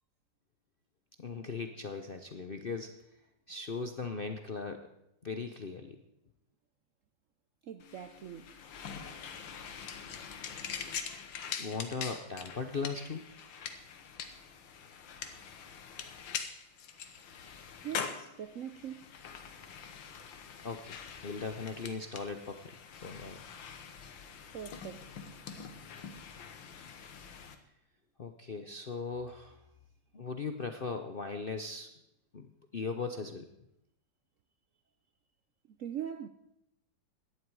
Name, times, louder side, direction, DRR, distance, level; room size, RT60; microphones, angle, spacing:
voice 1, 1.2-3.0 3.5-4.9 5.2-6.0 11.6-13.2 20.6-22.7 23.0-23.4 28.2-29.6 30.1-31.9 32.3-33.5, left 4 dB, 50° left, 0.6 m, -38 dB
voice 2, 7.6-8.5 17.8-19.1 24.4-25.2 35.7-36.3, right 9 dB, 70° right, 0.8 m, -42 dB
sound 1, 7.8-27.5, left 7 dB, 80° left, 1.9 m, -44 dB
17.0 x 11.5 x 4.7 m
omnidirectional pair, 2.0 m